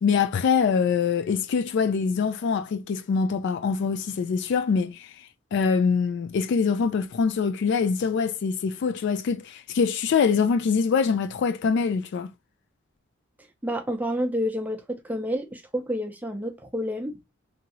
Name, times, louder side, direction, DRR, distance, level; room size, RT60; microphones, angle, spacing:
voice 1, 0.0-5.1 5.5-12.3, left 5 dB, 55° left, 0.3 m, -24 dB
voice 2, 13.6-17.2, equal, 10° right, 0.6 m, -29 dB
2.9 x 2.6 x 2.7 m
head